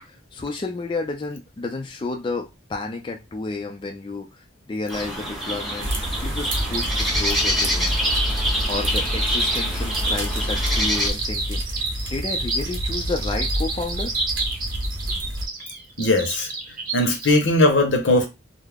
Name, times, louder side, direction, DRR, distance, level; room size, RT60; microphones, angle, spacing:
voice 1, 0.1-5.9 6.2-8.0 8.7-14.2, left 3 dB, 25° left, 0.3 m, -31 dB
sound 1, 4.9-11.1, equal, ahead, 0.7 m, -26 dB
sound 2, 5.8-15.5, equal, 90° right, 0.8 m, -28 dB
sound 3, 6.5-17.3, right 3 dB, 50° right, 0.7 m, -30 dB
voice 2, 16.0-16.5 16.9-18.3, left 2 dB, 80° left, 0.8 m, -19 dB
2.3 x 2.0 x 3.3 m
head